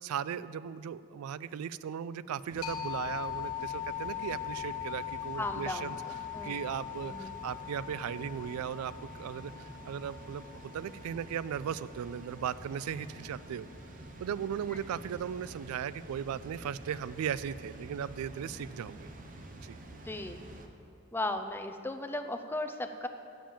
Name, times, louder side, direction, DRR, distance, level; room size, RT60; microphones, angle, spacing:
voice 1, 0.0-6.0 6.4-10.5 10.7-13.7 14.2-19.1 19.6-19.8, right 8 dB, 85° right, 17 dB, 0.3 m, -37 dB
Water, 2.5-20.7, right 1 dB, 40° right, 0.8 m, -48 dB
sound 1, 2.6-12.0, left 12 dB, 75° left, 1.2 m, -41 dB
voice 2, 5.4-5.9 6.3-6.7 7.0-7.4 14.7-14.8 20.0-20.4 21.1-23.1, left 2 dB, 10° left, 7 dB, 0.4 m, -36 dB
8.7 x 7.2 x 7.5 m, 2.9 s
head